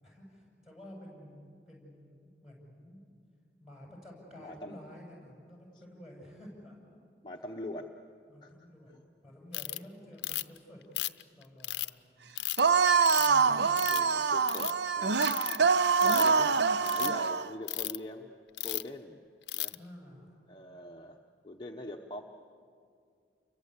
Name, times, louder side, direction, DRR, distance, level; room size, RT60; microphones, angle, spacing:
voice 1, 0.0-3.0 3.6-6.8 8.3-8.9 9.2-10.8 11.3-12.0 13.2-13.8 16.3-16.5 19.7-20.3, left 1 dB, ahead, -2 dB, 8.0 m, -51 dB
voice 2, 4.4-4.8 7.2-7.9 8.4-8.5 8.9-9.0 13.4-15.3 16.0-18.4 18.6-19.2 19.5-19.7 20.5-21.2 21.4-22.3, left 1 dB, 25° left, 1 dB, 0.9 m, -43 dB
Ratchet pawl, 9.5-9.8 10.2-10.6 11.0-11.9 12.4-12.6 13.1-13.4 13.8-14.1 14.4-14.7 15.2-15.6 16.0-16.4 16.8-17.1 17.7-18.0 18.6-18.9 19.5-19.8, left 16 dB, 70° left, 0.6 m, -34 dB
sound 1, 12.6-17.5, right 5 dB, 70° right, 0.6 m, -25 dB
30.0 x 23.5 x 8.4 m, 2.3 s
head